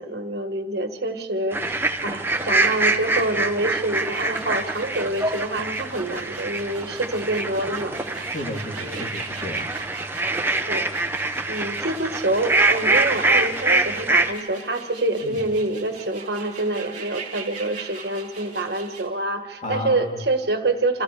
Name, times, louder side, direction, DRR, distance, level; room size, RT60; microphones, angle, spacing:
voice 1, 0.0-8.0 8.8-9.1 10.7-10.9 11.5-21.0, right 2 dB, 65° right, 5 dB, 1.6 m, -26 dB
sound 1, 1.5-14.3, right 2 dB, 15° right, 0.9 m, -24 dB
sound 2, 3.9-19.1, right 5 dB, 45° right, 3.4 m, -42 dB
voice 2, 8.2-9.6 15.2-15.4 19.6-20.1, left 1 dB, 45° left, 0 dB, 3.1 m, -32 dB
28.0 x 27.5 x 3.4 m, 1.5 s
head